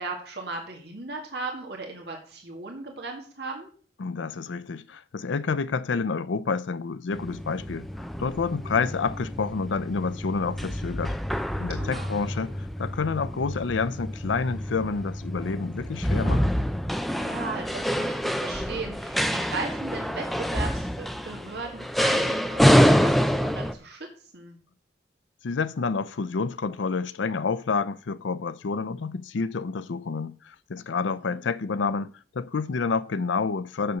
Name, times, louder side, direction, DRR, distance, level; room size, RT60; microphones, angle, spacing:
voice 1, 0.0-3.7 11.8-12.1 17.1-24.1 24.3-24.6 31.0-31.4, right 3 dB, 60° right, 1.9 m, -37 dB
voice 2, 4.0-7.9 8.2-11.1 11.6-16.5 25.4-34.0, left 4 dB, 90° left, 0.5 m, -29 dB
sound 1, 7.1-23.7, equal, ahead, 0.4 m, -26 dB
7.0 x 6.6 x 6.6 m
head